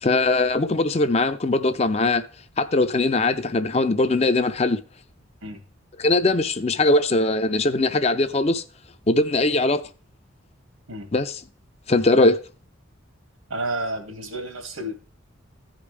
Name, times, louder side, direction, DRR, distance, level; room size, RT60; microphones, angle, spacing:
voice 1, 0.0-2.2 2.6-4.8 6.0-8.6 9.1-9.8 11.1-11.4 11.9-12.4, left 2 dB, 30° left, 0.5 m, -20 dB
voice 2, 13.5-14.9, right 1 dB, 85° right, 2.2 m, -30 dB
15.5 x 5.2 x 3.2 m
head